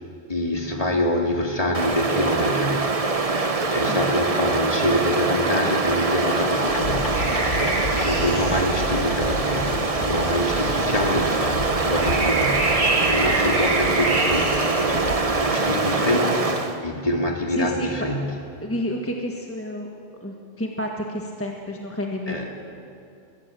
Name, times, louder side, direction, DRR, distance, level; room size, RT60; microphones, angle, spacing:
voice 1, 0.3-3.4 3.7-11.5 11.8-14.7 15.4-18.3 22.3-22.5, left 1 dB, 30° left, 0 dB, 2.4 m, -26 dB
Stream, 1.7-16.8, right 3 dB, 30° right, 1.1 m, -24 dB
sound 1, 6.7-15.2, left 1 dB, 75° left, 2.0 m, -32 dB
sound 2, 6.7-15.6, right 2 dB, 85° right, 2.6 m, -28 dB
voice 2, 17.5-17.9 18.6-19.9 20.2-22.5, equal, 10° left, 0 dB, 1.4 m, -30 dB
22.0 x 16.0 x 7.6 m, 2.6 s
omnidirectional pair, 1.2 m